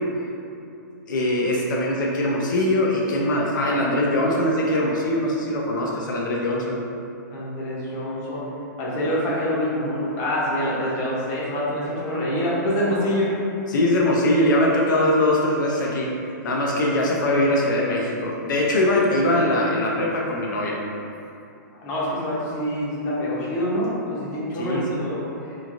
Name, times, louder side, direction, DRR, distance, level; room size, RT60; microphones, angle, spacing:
voice 1, 1.1-6.8 13.7-16.1 16.4-20.8 24.5-25.0, left 1 dB, 80° left, -2 dB, 0.4 m, -22 dB
voice 2, 7.3-8.4 8.8-13.3 21.8-25.7, equal, 25° left, -7 dB, 0.6 m, -26 dB
3.0 x 2.4 x 2.4 m, 2.7 s
hypercardioid pair, 160°, 10 cm